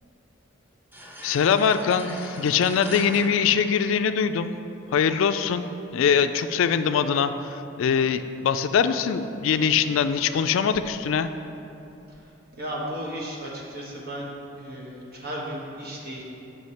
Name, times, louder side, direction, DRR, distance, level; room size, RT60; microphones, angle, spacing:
sound 1, 0.9-4.5, right 1 dB, 10° right, 0.5 m, -42 dB
voice 1, 1.2-4.5 4.9-5.7 5.9-11.3, left 7 dB, 65° left, 10 dB, 0.3 m, -23 dB
voice 2, 12.5-14.3 14.6-16.2, right 1 dB, 50° right, -3 dB, 1.3 m, -34 dB
7.9 x 5.7 x 4.2 m, 2.9 s
head